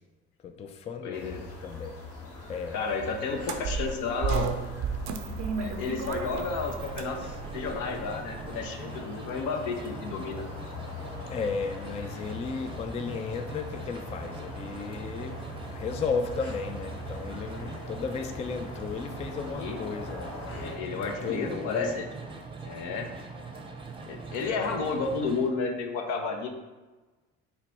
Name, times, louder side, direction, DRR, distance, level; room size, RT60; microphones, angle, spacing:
voice 1, 0.4-2.0 2.5-2.8 11.3-15.4 15.7-20.3 21.0-21.9, left 5 dB, 20° left, 6 dB, 0.3 m, -34 dB
voice 2, 1.0-1.4 2.7-4.5 5.6-10.4 19.5-19.8 20.5-22.1 22.6-23.1 24.1-26.5, left 4 dB, 65° left, 4 dB, 0.7 m, -32 dB
sound 1, 1.1-20.8, left 2 dB, 45° left, 1.1 m, -42 dB
sound 2, 3.4-8.6, right 6 dB, 55° right, 0.5 m, -34 dB
sound 3, 6.5-25.5, right 3 dB, 15° right, 0.7 m, -42 dB
4.1 x 2.2 x 4.1 m, 1.2 s
hypercardioid pair, 65°, 33 cm